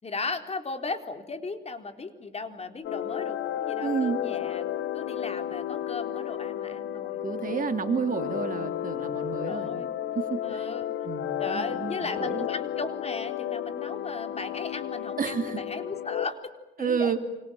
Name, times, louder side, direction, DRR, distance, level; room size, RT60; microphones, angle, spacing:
voice 1, 0.0-7.2 7.5-7.7 8.5-8.8 9.2-9.9 10.4-10.9 11.4-16.4 16.8-17.2, left 3 dB, 30° left, 6 dB, 3.8 m, -36 dB
sound 1, 2.8-16.3, left 10 dB, 80° left, 1.4 m, -33 dB
voice 2, 3.8-4.2 7.2-9.8 10.1-10.7 11.0-12.5 15.2-15.6 16.8-17.2, right 6 dB, 45° right, 7 dB, 2.8 m, -30 dB
28.5 x 26.5 x 7.6 m, 1.0 s
cardioid pair, 90°, 20 cm